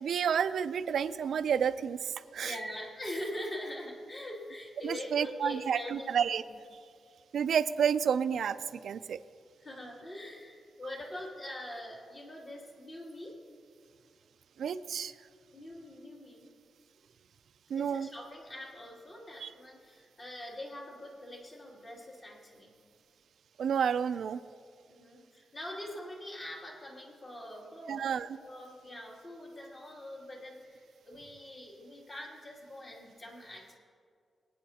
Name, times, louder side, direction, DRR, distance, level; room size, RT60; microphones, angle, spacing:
voice 1, 0.0-2.5 4.8-6.4 7.3-8.6 8.8-9.2 14.6-15.1 17.7-18.1 19.4-19.5 23.6-24.4 27.9-28.3, right 7 dB, 80° right, 12 dB, 0.4 m, -30 dB
voice 2, 2.3-6.1 9.6-13.4 15.5-16.5 17.7-22.7 24.9-33.8, left 1 dB, 40° left, -3 dB, 2.6 m, -43 dB
25.5 x 9.2 x 2.8 m, 2.2 s
wide cardioid pair, 120°, 0 cm